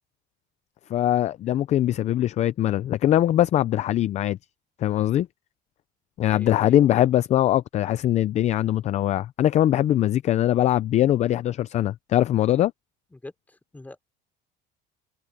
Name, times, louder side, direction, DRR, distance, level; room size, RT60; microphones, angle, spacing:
voice 1, 0.9-4.4 4.8-5.3 6.2-12.7, left 12 dB, 35° left, 0.4 m, -22 dB
voice 2, 6.3-6.9 13.1-14.0, left 2 dB, 10° left, 3.6 m, -42 dB
cardioid pair, 155°, 21 cm